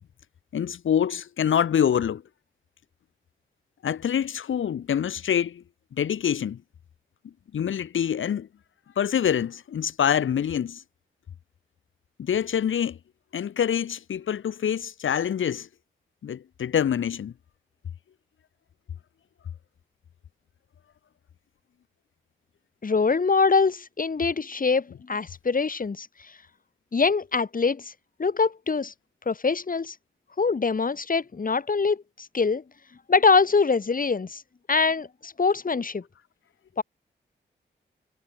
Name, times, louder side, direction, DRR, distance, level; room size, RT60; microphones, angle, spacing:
voice 1, 0.5-2.2 3.8-5.6 5.9-6.6 7.2-8.5 9.0-10.8 12.2-13.0 13.3-15.7 16.2-17.3, left 8 dB, 85° left, 1.7 m, -25 dB
voice 2, 22.8-26.3 26.9-27.9 28.2-28.9 29.3-30.0 30.4-32.6 33.1-34.4 34.7-36.0 36.8-36.9, left 4 dB, 45° left, 2.1 m, -24 dB
cardioid pair, 65°, 20 cm